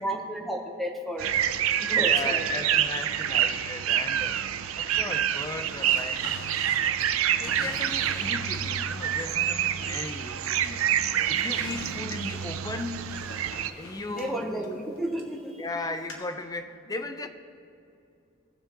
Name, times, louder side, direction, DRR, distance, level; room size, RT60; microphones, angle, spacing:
voice 1, 0.0-1.3 1.8-2.6 14.1-15.7, right 1 dB, ahead, 0 dB, 1.0 m, -32 dB
sound 1, 1.2-13.7, right 10 dB, 75° right, 0.5 m, -27 dB
voice 2, 1.9-4.4 4.8-6.2 7.2-10.9 11.3-13.1 13.8-14.8 15.6-17.3, left 2 dB, 20° left, 8 dB, 0.6 m, -36 dB
Drawer open or close, 5.8-8.7 9.2-10.3 10.6-15.4 16.1-16.2, left 1 dB, 75° left, 1.8 m, -44 dB
19.5 x 7.4 x 3.0 m, 2.6 s
head